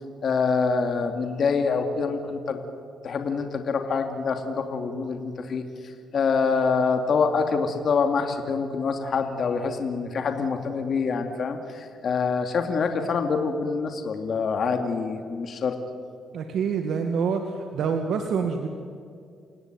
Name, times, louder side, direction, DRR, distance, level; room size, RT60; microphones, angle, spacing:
voice 1, 0.2-2.6 3.0-15.7, left 5 dB, 55° left, 6 dB, 2.4 m, -26 dB
voice 2, 16.3-18.7, right 6 dB, 70° right, 5 dB, 1.9 m, -26 dB
29.5 x 17.5 x 9.2 m, 2.3 s
cardioid pair, 90°, 0 cm